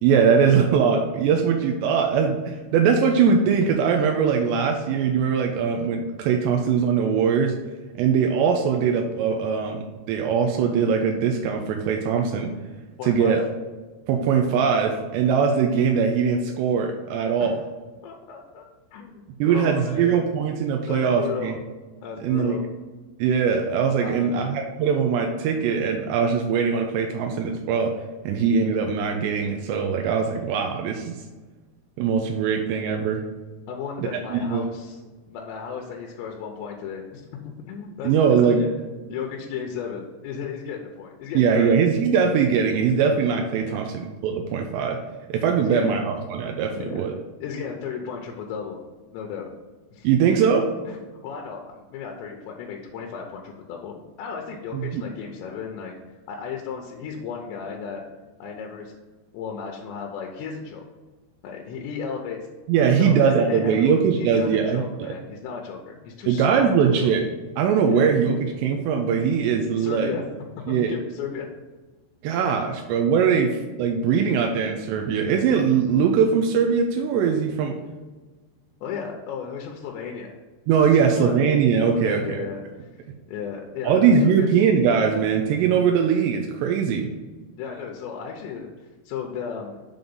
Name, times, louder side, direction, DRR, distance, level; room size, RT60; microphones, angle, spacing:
voice 1, 0.0-7.5 8.0-12.5 13.0-13.4 14.1-17.5 19.4-21.6 22.2-22.6 23.2-27.9 28.2-31.2 32.0-33.2 34.3-34.7 38.0-38.7 41.3-45.0 45.3-47.1 50.0-50.7 54.7-55.0 62.7-65.1 66.3-67.3 67.6-70.1 70.7-70.9 72.2-77.8 80.7-82.4 83.8-87.1, right 6 dB, 85° right, 2 dB, 2.8 m, -21 dB
voice 2, 13.0-13.4 17.4-17.6 18.0-18.6 18.9-20.2 20.9-21.5 22.0-22.6 24.0-24.5 33.7-35.0 35.3-38.7 39.1-41.8 43.6-43.8 45.5-45.9 46.8-47.0 47.4-48.8 49.1-49.5 49.9-50.1 50.9-55.9 56.3-58.0 58.4-58.9 59.3-60.8 61.4-62.4 62.8-67.1 67.9-68.1 69.8-70.3 70.9-71.5 78.8-80.3 80.8-81.4 81.9-82.9 83.3-84.5 87.6-88.7 89.1-89.8, left 6 dB, 85° left, 1 dB, 3.0 m, -35 dB
7.3 x 3.9 x 5.3 m, 1.3 s
omnidirectional pair, 5.0 m